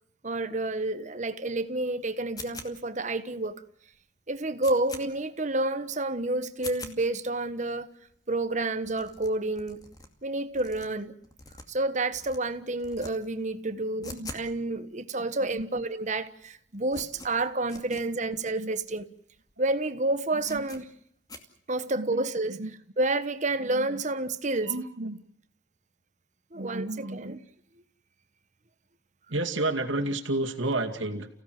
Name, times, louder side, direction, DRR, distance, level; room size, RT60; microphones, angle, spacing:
voice 1, 0.2-3.6 4.3-7.9 8.3-9.8 10.2-11.1 11.7-19.1 19.6-20.9 21.7-22.6 23.0-24.7 26.5-27.4, right 2 dB, 40° right, 1.3 m, -29 dB
sound 1, 2.4-3.0 3.5-3.6 3.9-4.0 4.3-5.0 5.5-5.6 5.9-6.0 6.5-7.0 7.5-7.6 7.8-8.2 8.4-8.5 8.8-10.1 10.5-11.8 12.1-12.4 12.8-13.1 13.4-14.5 14.8-14.9 15.5-15.6 15.8-16.2 16.4-18.0 18.5-18.6 18.8-18.9 19.4-19.5 19.8-19.9 20.4-20.8 21.3-21.4, left 2 dB, 20° left, 2.4 m, -44 dB
voice 2, 14.0-14.3 15.5-15.6 18.6-18.7 20.3-20.7 22.0-22.7 23.6-24.0 24.6-25.2 26.5-27.4 29.3-31.3, right 2 dB, 85° right, 2.3 m, -32 dB
30.0 x 16.5 x 7.8 m
head